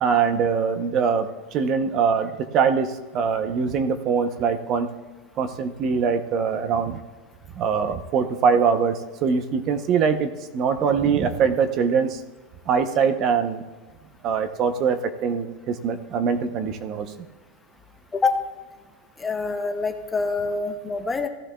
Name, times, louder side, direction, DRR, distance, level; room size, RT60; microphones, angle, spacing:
voice 1, 0.0-4.9 5.4-7.0 7.5-12.2 12.7-13.6 14.2-17.3, right 6 dB, 35° right, 9 dB, 0.7 m, -23 dB
voice 2, 19.2-21.3, left 4 dB, 10° left, 6 dB, 0.6 m, -25 dB
16.5 x 12.0 x 2.3 m, 1.3 s
supercardioid pair, 155°, 0 cm